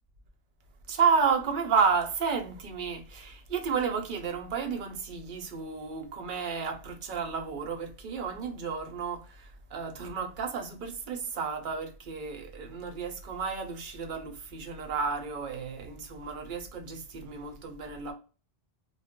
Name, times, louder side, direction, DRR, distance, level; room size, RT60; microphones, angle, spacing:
voice 1, 0.9-18.1, right 5 dB, 55° right, 0.7 m, -31 dB
2.3 x 2.0 x 3.5 m
omnidirectional pair, 1.1 m